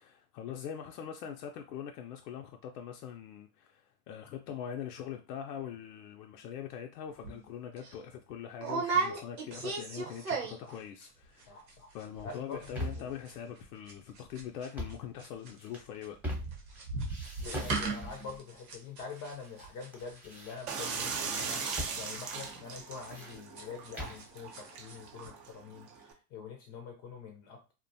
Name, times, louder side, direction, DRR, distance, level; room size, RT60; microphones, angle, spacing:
voice 1, 0.0-11.6 11.9-16.2, left 9 dB, 80° left, 0.5 m, -43 dB
sound 1, 7.2-7.4 7.8-7.9 8.6-10.8 11.0-11.4 11.7-11.8 12.0-12.4 12.6-14.9 15.2-24.2 24.5-25.0 25.2-25.3, right 4 dB, 85° right, 1.0 m, -37 dB
voice 2, 11.5-11.9 12.2-13.1 17.4-25.9 26.3-27.7, left 5 dB, 35° left, 0.5 m, -45 dB
sound 2, 12.4-13.2 14.6-15.1 15.6-16.8 17.1-18.4 19.1-19.7 19.9-21.0 21.8-22.0 22.3-22.4 22.8-24.3, equal, 5° right, 0.8 m, -41 dB
sound 3, 20.7-26.1, right 5 dB, 35° right, 0.5 m, -39 dB
2.5 x 2.2 x 2.6 m
hypercardioid pair, 105°, 48 cm